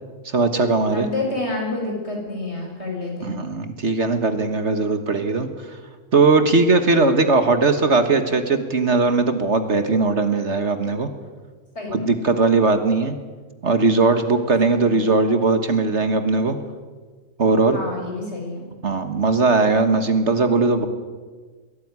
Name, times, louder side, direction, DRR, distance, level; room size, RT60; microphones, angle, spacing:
voice 1, 0.3-1.1 3.2-5.5 6.1-11.1 11.9-13.2 13.6-16.6 17.4-17.8 18.8-20.9, right 3 dB, 55° right, 8 dB, 1.8 m, -19 dB
voice 2, 0.9-3.4 11.8-12.1 14.7-15.0 17.7-18.7, left 2 dB, 50° left, 0 dB, 6.9 m, -29 dB
22.5 x 17.5 x 9.7 m, 1.4 s
omnidirectional pair, 1.4 m